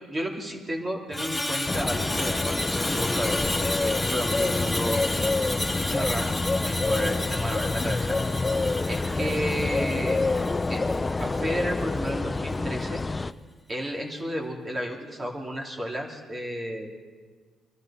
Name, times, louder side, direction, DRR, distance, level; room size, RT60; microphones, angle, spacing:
voice 1, 0.1-5.0 5.9-8.2 8.9-10.2 10.7-13.0 13.7-17.0, equal, 30° right, 0 dB, 2.8 m, -32 dB
Screech, 1.1-11.5 11.8-12.1, left 1 dB, 5° left, 2.5 m, -32 dB
sound 1, 1.7-13.3, left 3 dB, 20° left, 0.5 m, -27 dB
24.5 x 12.5 x 4.3 m, 1.5 s
cardioid pair, 90°, 0 cm